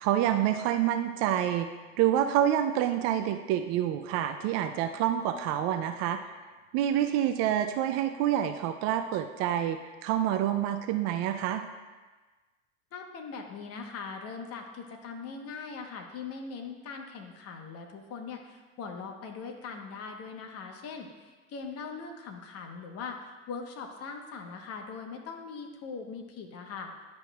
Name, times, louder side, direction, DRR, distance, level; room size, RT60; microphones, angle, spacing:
voice 1, 0.0-1.7 2.0-6.2 6.7-11.6, right 11 dB, 45° right, 7 dB, 0.5 m, -27 dB
voice 2, 12.9-26.9, left 5 dB, 40° left, 3 dB, 1.1 m, -41 dB
10.5 x 5.2 x 2.3 m, 1.3 s
hypercardioid pair, 85°, 38 cm